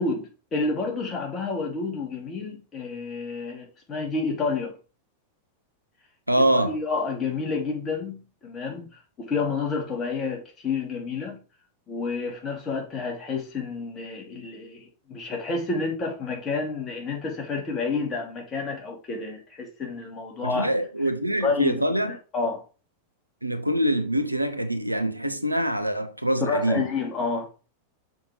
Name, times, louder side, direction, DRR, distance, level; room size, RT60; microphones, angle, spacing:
voice 1, 0.0-4.7 6.5-8.9 9.2-11.4 11.9-20.7 21.4-21.8 22.3-22.6 26.4-27.5, left 4 dB, 25° left, 3.0 m, -29 dB
voice 2, 6.3-6.8 20.4-22.2 23.4-26.9, right 1 dB, 90° right, 0.8 m, -24 dB
6.6 x 5.7 x 4.6 m
figure-of-eight pair, 90°, 0 cm